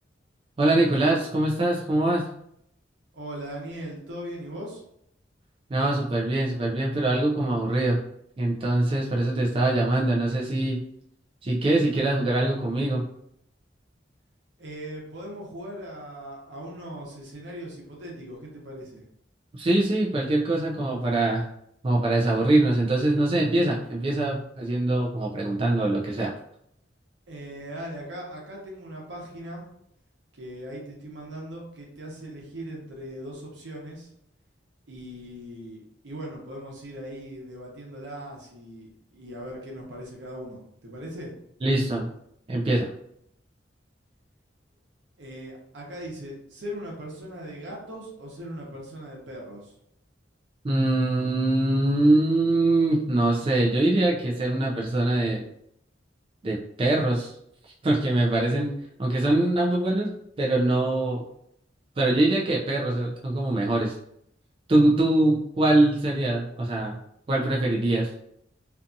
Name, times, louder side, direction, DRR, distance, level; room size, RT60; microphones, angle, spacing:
voice 1, 0.6-2.2 5.7-8.0 8.4-10.8 11.4-13.0 19.5-21.4 21.8-26.3 41.6-42.1 42.5-42.9 50.6-55.4 56.4-57.3 57.8-58.7 59.0-61.2 62.0-63.9 64.7-67.0 67.3-68.1, right 2 dB, 30° right, -3 dB, 0.3 m, -23 dB
voice 2, 3.1-4.8 14.6-19.0 27.3-29.7 30.3-34.1 34.9-41.3 45.2-49.8, equal, 85° right, -2 dB, 0.8 m, -39 dB
2.6 x 2.4 x 2.6 m, 0.73 s
head